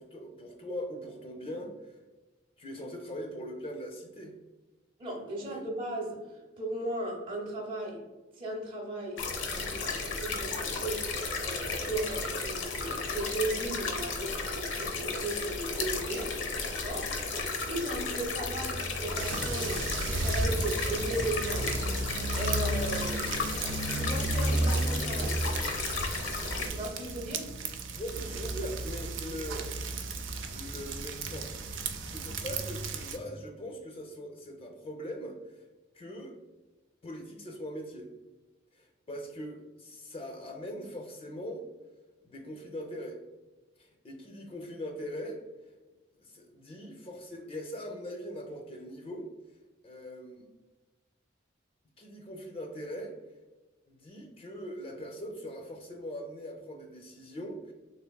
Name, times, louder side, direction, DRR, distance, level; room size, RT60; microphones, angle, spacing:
voice 1, 0.0-2.0 2.6-4.3 5.4-5.6 27.9-29.7 30.5-31.5 32.0-35.7 35.9-36.4 37.0-38.1 38.7-41.6 42.2-43.2 43.8-45.4 46.2-49.3 49.8-50.5 52.0-53.1 53.9-57.7, equal, 30° left, 1 dB, 0.4 m, -41 dB
voice 2, 5.0-8.0 8.4-11.1 11.4-16.3 16.6-21.7 22.3-23.3 23.9-25.4 26.7-27.5, right 2 dB, 30° right, -2 dB, 0.6 m, -36 dB
sound 1, 9.2-26.7, left 3 dB, 80° left, 0.6 m, -34 dB
sound 2, 19.2-33.2, right 2 dB, 85° right, 0.4 m, -33 dB
3.3 x 3.3 x 2.2 m, 1.2 s
head